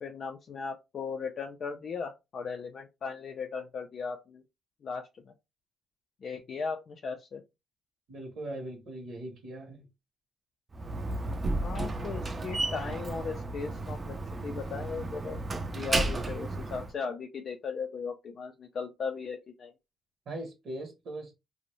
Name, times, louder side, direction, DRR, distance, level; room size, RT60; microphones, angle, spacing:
voice 1, 0.0-4.4 4.8-5.3 6.2-7.4 11.6-14.2 14.4-15.4 15.7-19.7, left 5 dB, 55° left, 0.3 m, -37 dB
voice 2, 8.1-9.9 20.3-21.3, right 1 dB, 65° right, 0.8 m, -40 dB
Slam, 10.7-16.9, right 2 dB, 30° right, 0.4 m, -33 dB
2.6 x 2.0 x 3.0 m
cardioid pair, 90°, 0 cm